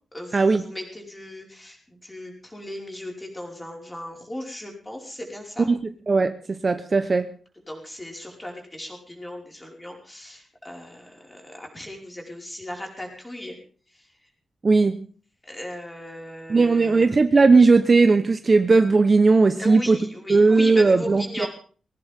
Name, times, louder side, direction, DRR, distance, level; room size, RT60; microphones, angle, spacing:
voice 1, 0.1-5.7 7.7-13.6 13.9-14.1 15.4-17.1 19.6-21.5, left 1 dB, 10° left, 1 dB, 5.2 m, -37 dB
voice 2, 6.6-7.3 14.6-15.0 16.5-20.0 20.3-21.5, right 3 dB, 30° right, 8 dB, 1.0 m, -17 dB
21.5 x 17.5 x 3.7 m, 0.40 s
wide cardioid pair, 160°, 0 cm